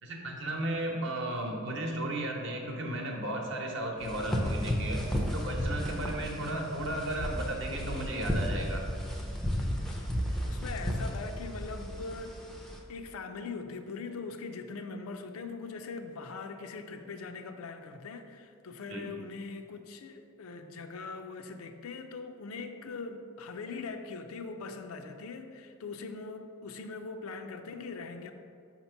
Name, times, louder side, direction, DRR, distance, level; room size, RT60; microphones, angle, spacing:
voice 1, 0.0-8.8 18.9-19.1, right 1 dB, 55° right, 0 dB, 0.9 m, -34 dB
sound 1, 4.0-12.8, equal, ahead, 0.4 m, -33 dB
voice 2, 10.4-12.4 12.9-28.3, left 4 dB, 75° left, 7 dB, 0.4 m, -41 dB
5.8 x 2.9 x 5.6 m, 2.4 s
head